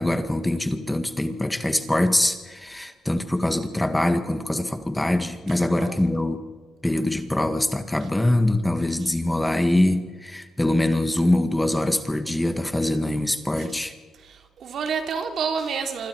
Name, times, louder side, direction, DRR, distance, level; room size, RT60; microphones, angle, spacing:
voice 1, 0.0-6.4 6.8-13.9, left 1 dB, 10° left, 8 dB, 1.8 m, -23 dB
voice 2, 5.5-6.0 13.6-13.7 14.2-16.1, right 6 dB, 65° right, 4 dB, 3.2 m, -29 dB
26.0 x 25.5 x 4.7 m, 1.4 s
cardioid pair, 90°, 0 cm